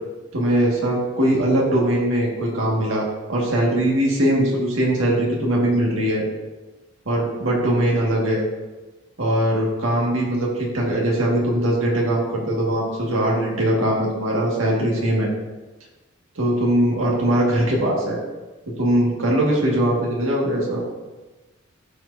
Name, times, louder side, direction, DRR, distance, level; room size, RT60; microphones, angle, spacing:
voice 1, 0.3-6.3 7.1-8.4 9.2-15.3 16.4-18.2 18.7-20.8, right 1 dB, 75° right, -2 dB, 1.8 m, -21 dB
12.0 x 4.6 x 2.7 m, 1.2 s
head